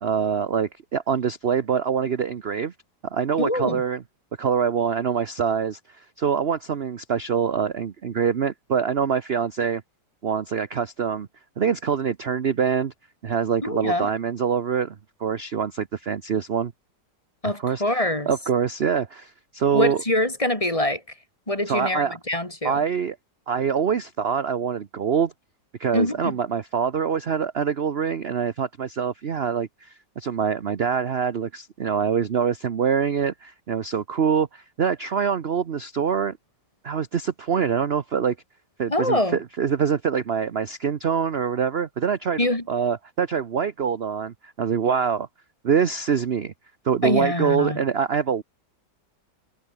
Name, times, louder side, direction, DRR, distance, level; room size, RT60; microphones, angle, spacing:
voice 1, 0.0-2.7 3.1-4.0 4.4-9.8 10.2-11.3 11.6-12.9 13.2-16.7 17.4-20.0 21.7-22.2 22.6-23.2 23.5-25.3 25.8-36.4 36.8-38.4 38.8-45.3 45.6-46.5 46.8-48.4, right 7 dB, 45° right, 1.0 m, -25 dB
voice 2, 3.4-3.8 13.6-14.1 17.4-18.3 19.7-21.0 21.5-22.8 25.9-26.4 38.9-39.4 42.4-42.6 47.0-47.8, left 1 dB, 20° left, 3.3 m, -24 dB
omnidirectional pair, 1.8 m